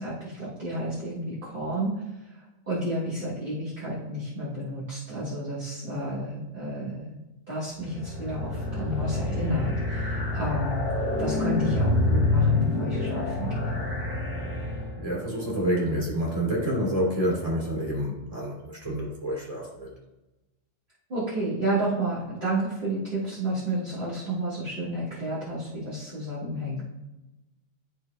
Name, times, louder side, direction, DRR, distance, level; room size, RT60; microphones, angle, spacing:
voice 1, 0.0-1.9 2.3-7.2 7.5-10.8 11.2-14.0 21.1-26.8, right 1 dB, 40° right, -9 dB, 1.9 m, -31 dB
sound 1, 7.8-15.2, left 2 dB, 35° left, 1.5 m, -27 dB
voice 2, 15.0-19.9, equal, 25° right, -4 dB, 2.8 m, -28 dB
12.5 x 4.5 x 2.3 m, 1.0 s
omnidirectional pair, 1.3 m